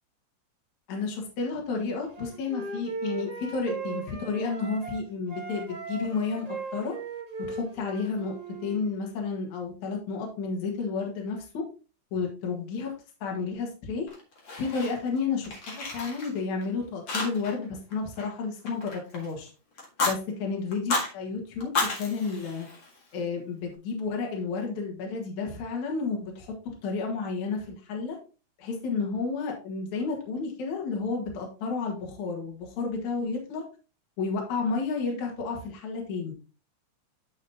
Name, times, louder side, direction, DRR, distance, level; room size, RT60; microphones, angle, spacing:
voice 1, 0.9-6.5 6.7-7.0 7.5-8.3 8.6-11.6 12.1-12.9 13.2-14.1 14.5-19.5 20.0-22.7 23.1-26.5 26.8-28.2 28.6-33.6 34.2-36.3, left 4 dB, 65° left, 0 dB, 3.0 m, -31 dB
Wind instrument woodwind instrument, 2.1-5.0 5.3-8.8, right 4 dB, 40° right, 0.5 m, -38 dB
Fire, 14.1-15.2 15.4-16.7 17.1-17.6 17.9-19.3 19.8-20.2 20.7-21.1 21.6-23.2, left 3 dB, 40° left, 2.1 m, -32 dB
8.9 x 6.4 x 2.9 m, 0.34 s
omnidirectional pair, 3.8 m